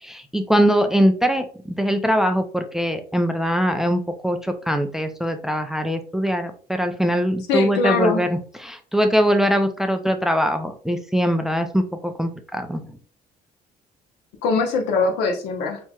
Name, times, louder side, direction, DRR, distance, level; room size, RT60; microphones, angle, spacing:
voice 1, 0.0-12.8, equal, 5° right, 7 dB, 0.4 m, -22 dB
voice 2, 7.5-8.2 14.4-15.8, left 3 dB, 90° left, 3 dB, 0.9 m, -21 dB
4.2 x 2.8 x 2.3 m, 0.43 s
cardioid pair, 110°, 17 cm